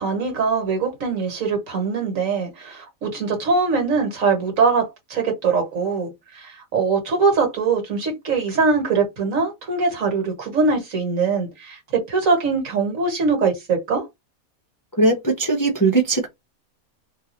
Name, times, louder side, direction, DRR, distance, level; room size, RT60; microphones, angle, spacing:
voice 1, 0.0-14.1, right 4 dB, 65° right, 1.7 m, -22 dB
voice 2, 15.0-16.3, right 3 dB, 20° left, 0.6 m, -19 dB
3.8 x 2.9 x 2.8 m
omnidirectional pair, 1.5 m